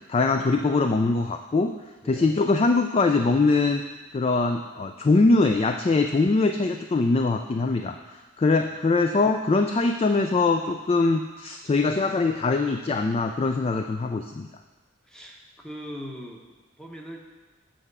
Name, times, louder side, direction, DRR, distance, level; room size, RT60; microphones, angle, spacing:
voice 1, 0.1-1.7 2.1-3.8 4.1-8.0 8.4-14.5, left 3 dB, 30° left, 6 dB, 0.3 m, -22 dB
voice 2, 15.0-16.4 16.8-17.2, equal, 5° left, 0 dB, 0.8 m, -40 dB
7.7 x 4.8 x 6.7 m, 1.3 s
head